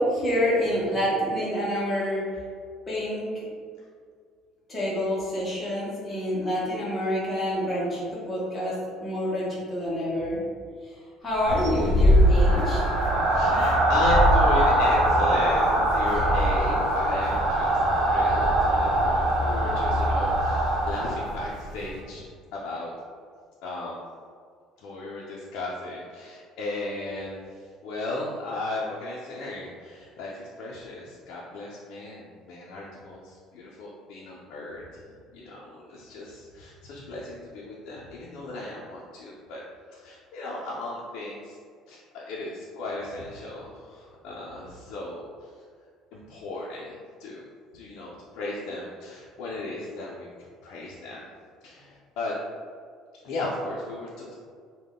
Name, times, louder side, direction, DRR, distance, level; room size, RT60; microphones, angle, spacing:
voice 1, 0.0-2.3 2.9-3.3 4.7-8.7 9.0-10.5 11.2-12.9, equal, 15° left, -7 dB, 0.9 m, -27 dB
sound 1, 11.4-21.4, right 1 dB, 30° right, 0.9 m, -22 dB
sound 2, 11.4-22.0, right 1 dB, 70° right, 0.7 m, -37 dB
voice 2, 13.3-22.9 23.6-24.0 24.8-39.6 39.9-41.6 41.9-45.5 46.1-47.4 47.7-50.3 50.6-51.3 51.6-52.3 53.2-54.3, left 2 dB, 65° left, -5 dB, 0.5 m, -35 dB
3.5 x 2.2 x 3.6 m, 2.1 s
cardioid pair, 170°, 0 cm